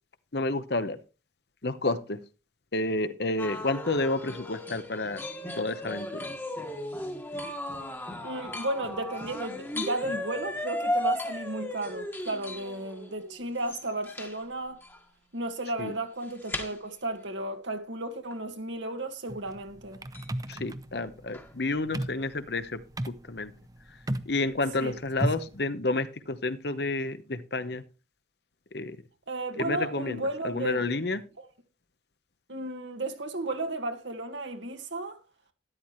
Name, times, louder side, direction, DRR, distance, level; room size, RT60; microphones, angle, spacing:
voice 1, 0.3-1.0 1.6-2.2 2.7-5.2 5.6-6.3 15.8-15.9 20.5-23.5 24.3-27.8 28.7-29.0 29.6-31.2, left 2 dB, 60° left, 1.0 m, -30 dB
sound 1, 3.4-14.4 14.8-15.0 16.2-16.7 18.3-18.4 20.1-20.3 21.3-21.5 22.2-22.3, left 1 dB, 10° left, 1.4 m, -35 dB
voice 2, 8.2-14.8 15.3-20.0 24.8-25.0 29.3-30.8 31.4-31.5 32.5-35.2, right 2 dB, 80° right, 1.8 m, -34 dB
sound 2, 19.3-25.6, right 1 dB, 20° right, 0.6 m, -35 dB
12.5 x 11.5 x 3.2 m
head